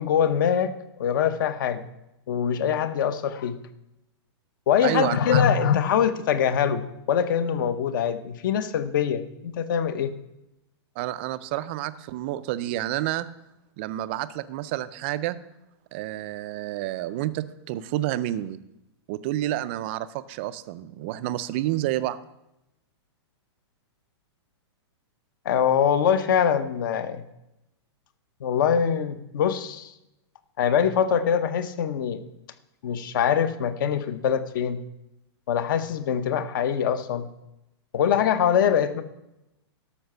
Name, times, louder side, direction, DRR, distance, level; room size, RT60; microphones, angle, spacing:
voice 1, 0.0-1.9 2.3-3.6 4.7-10.1 25.4-27.2 28.4-29.9 30.6-32.2 32.8-34.8 35.5-37.3 37.9-39.0, left 8 dB, 45° left, 13 dB, 0.8 m, -23 dB
voice 2, 4.8-5.4 11.0-13.3 13.8-15.4 15.9-18.6 19.1-22.2, right 14 dB, 25° right, 14 dB, 0.4 m, -29 dB
12.5 x 5.9 x 6.6 m, 0.89 s
hypercardioid pair, 170°, 15 cm